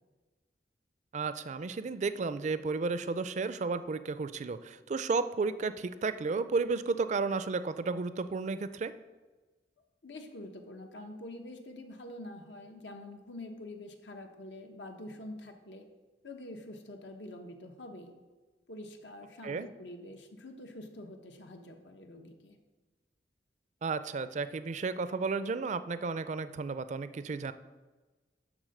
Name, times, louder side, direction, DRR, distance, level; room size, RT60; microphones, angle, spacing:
voice 1, 1.1-8.9 19.4-19.7 23.8-27.5, right 4 dB, 45° right, 13 dB, 0.4 m, -33 dB
voice 2, 10.0-15.9 16.2-18.1 18.7-22.6, left 1 dB, 90° left, 4 dB, 1.1 m, -46 dB
11.0 x 3.8 x 6.6 m, 1.2 s
head